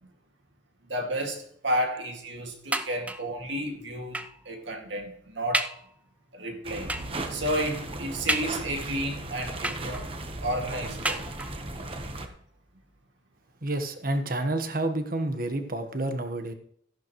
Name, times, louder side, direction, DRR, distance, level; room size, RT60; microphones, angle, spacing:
voice 1, 0.9-5.7 6.3-6.9 7.3-10.1 10.4-11.3, equal, 75° right, 2.3 m, -32 dB
sound 1, 2.7-3.4 4.1-4.5 5.0-5.1 5.5-5.9 6.9-7.2 8.3-8.9 9.6-10.2 11.0-11.7 12.5-12.6 13.0-13.1, right 2 dB, 5° right, 0.4 m, -32 dB
sound 2, 6.6-12.3, right 2 dB, 30° right, 1.1 m, -36 dB
voice 2, 13.6-16.5, right 2 dB, 50° right, 1.4 m, -29 dB
14.0 x 11.0 x 3.2 m
head